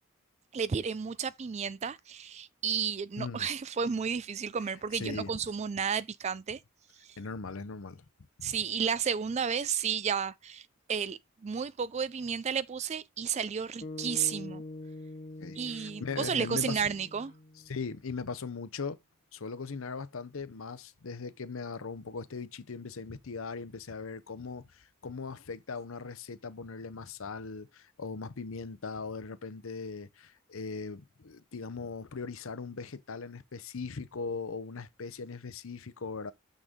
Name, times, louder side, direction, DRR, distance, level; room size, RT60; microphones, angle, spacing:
voice 1, 0.5-6.6 7.0-7.2 8.4-14.6 15.6-17.3, right 6 dB, 30° right, 0.3 m, -32 dB
voice 2, 3.2-3.5 4.9-5.3 7.2-8.0 8.4-8.6 15.4-16.9 17.7-19.0 19.3-36.3, left 4 dB, 70° left, 0.7 m, -39 dB
sound 1, 13.8-18.2, left 2 dB, 35° left, 0.8 m, -45 dB
6.6 x 6.2 x 3.6 m
head